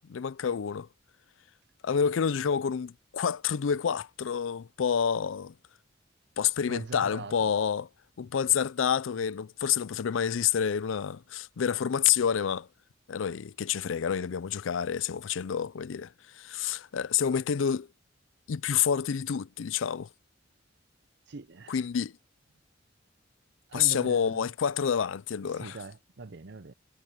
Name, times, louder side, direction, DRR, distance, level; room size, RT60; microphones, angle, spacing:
voice 1, 0.0-0.9 1.8-5.5 6.4-7.9 8.2-12.7 13.1-17.9 18.5-20.1 21.7-22.1 23.7-25.8, left 7 dB, 80° left, 0.4 m, -28 dB
voice 2, 6.7-7.5 21.3-21.8 23.7-24.5 25.5-26.7, right 3 dB, 60° right, 0.7 m, -42 dB
head